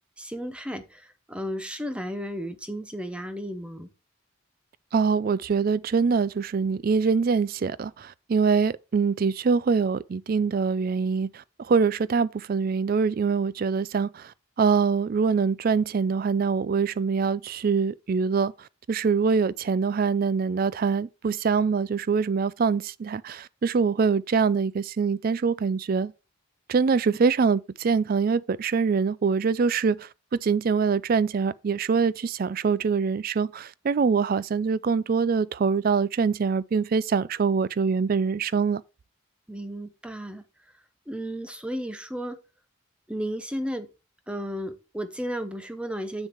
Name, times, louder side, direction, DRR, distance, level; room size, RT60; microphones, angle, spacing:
voice 1, 0.2-3.9 39.5-40.4 41.1-42.4 43.1-43.9 44.3-46.3, equal, 5° right, 0.8 m, -33 dB
voice 2, 4.9-14.3 14.6-26.1 26.7-38.8, right 5 dB, 45° right, 0.3 m, -24 dB
7.2 x 6.5 x 4.5 m
head